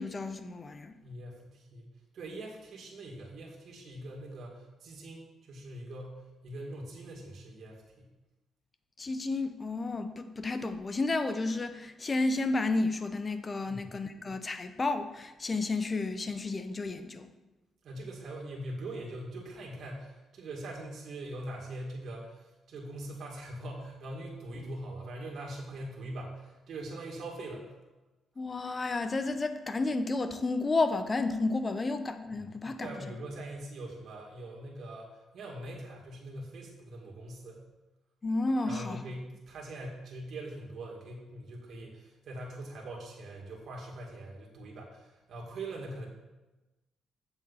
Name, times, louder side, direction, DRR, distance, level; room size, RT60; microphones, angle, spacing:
voice 1, 0.0-1.0 9.0-17.3 28.4-32.9 38.2-39.0, left 3 dB, 30° left, 9 dB, 0.7 m, -31 dB
voice 2, 1.0-8.1 13.7-14.0 17.8-27.7 32.2-32.5 32.8-37.6 38.6-46.1, right 1 dB, 60° right, -2 dB, 2.1 m, -42 dB
7.9 x 7.0 x 4.1 m, 1.1 s
cardioid pair, 90°, 0 cm